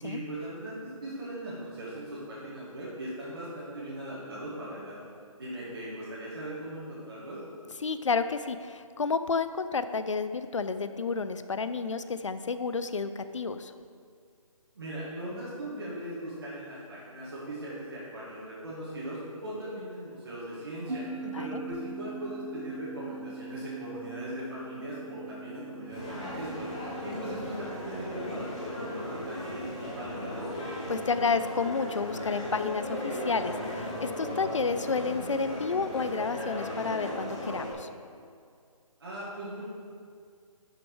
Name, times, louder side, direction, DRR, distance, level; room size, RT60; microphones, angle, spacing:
voice 1, 0.0-5.0 5.4-7.4 14.7-21.0 21.4-26.7 27.0-30.5 39.0-39.7, right 1 dB, 40° right, -10 dB, 2.1 m, -39 dB
voice 2, 7.8-13.7 21.2-21.6 30.9-37.9, left 4 dB, 55° left, 11 dB, 0.5 m, -31 dB
sound 1, 20.9-33.7, right 3 dB, 85° right, 1.6 m, -45 dB
sound 2, 25.9-37.7, left 1 dB, 10° left, 0.8 m, -36 dB
12.0 x 6.4 x 4.7 m, 2.2 s
hypercardioid pair, 180°, 18 cm